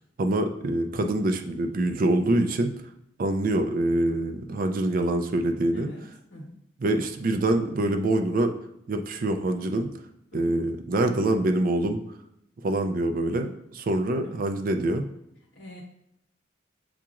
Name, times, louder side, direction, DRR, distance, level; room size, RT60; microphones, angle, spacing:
voice 1, 0.2-2.7 3.2-5.9 6.8-8.5 8.9-9.9 10.3-12.0 12.6-15.1, right 1 dB, 50° right, 6 dB, 0.4 m, -25 dB
voice 2, 5.7-6.6 10.3-10.5 14.2-14.4 15.5-15.8, equal, 65° left, -2 dB, 1.3 m, -43 dB
7.1 x 2.9 x 2.4 m, 0.79 s
head